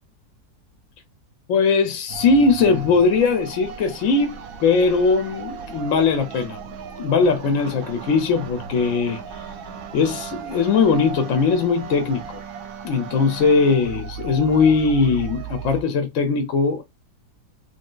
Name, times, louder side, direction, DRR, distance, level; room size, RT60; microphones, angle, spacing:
voice 1, 1.5-9.4 9.9-12.4 12.8-16.8, left 4 dB, 70° left, 0.8 m, -20 dB
sound 1, 2.1-15.8, right 7 dB, 70° right, 0.9 m, -36 dB
3.2 x 2.6 x 2.2 m
omnidirectional pair, 1.8 m